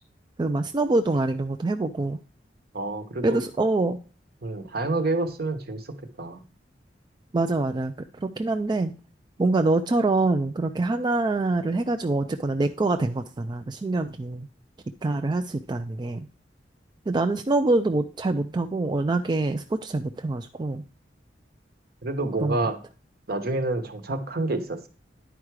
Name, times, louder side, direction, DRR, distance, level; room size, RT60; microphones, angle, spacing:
voice 1, 0.4-2.2 3.2-4.0 7.3-8.9 9.4-14.5 15.0-16.3 17.1-20.8 22.4-22.7, right 2 dB, 25° right, 7 dB, 0.4 m, -25 dB
voice 2, 2.7-3.4 4.4-6.4 22.0-22.8 23.3-24.9, right 2 dB, 55° right, 8 dB, 1.1 m, -28 dB
10.0 x 4.8 x 4.7 m, 0.37 s
head